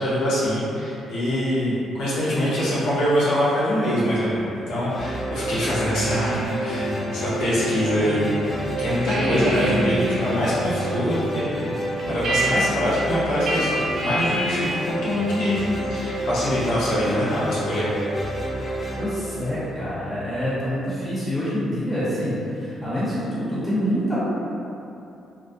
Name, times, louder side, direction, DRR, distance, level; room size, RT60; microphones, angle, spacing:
voice 1, 0.0-11.7 12.1-15.6 15.9-17.9, equal, 85° left, -9 dB, 0.6 m, -24 dB
sound 1, 4.9-20.2, right 1 dB, 25° left, 0.4 m, -29 dB
sound 2, 5.9-8.4 8.7-14.8, right 1 dB, 65° right, 0.6 m, -29 dB
voice 2, 19.0-24.2, equal, 5° left, -12 dB, 1.0 m, -26 dB
2.3 x 2.1 x 2.6 m, 2.8 s
cardioid pair, 90°, 0 cm